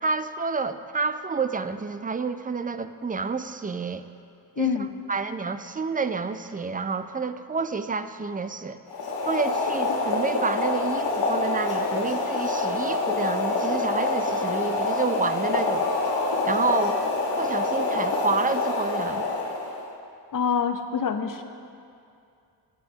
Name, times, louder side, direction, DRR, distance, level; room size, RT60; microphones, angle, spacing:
voice 1, 0.0-4.1 4.6-4.7 5.1-8.8 9.3-15.9 16.4-17.0 17.4-19.3, right 4 dB, 20° right, 10 dB, 0.5 m, -29 dB
voice 2, 4.6-4.9 20.3-21.4, left 7 dB, 50° left, 7 dB, 0.9 m, -25 dB
Boiling, 8.9-19.9, left 3 dB, 90° left, 1.5 m, -26 dB
17.5 x 8.0 x 2.9 m, 2.4 s
cardioid pair, 70°, 42 cm